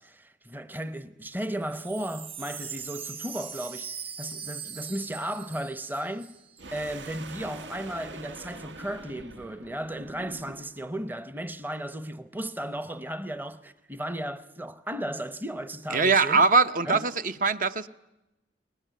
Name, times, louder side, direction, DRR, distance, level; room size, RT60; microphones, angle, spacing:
voice 1, 0.0-6.4 6.7-16.4 16.8-17.1, right 1 dB, 10° right, 0.8 m, -35 dB
Wind chime, 1.5-6.8 7.0-7.1 7.3-7.8, right 7 dB, 30° right, 1.5 m, -41 dB
sound 1, 6.6-10.9, right 2 dB, 80° right, 1.4 m, -44 dB
voice 2, 15.9-17.1 17.4-17.9, right 4 dB, 50° right, 0.8 m, -21 dB
22.5 x 20.0 x 9.3 m
head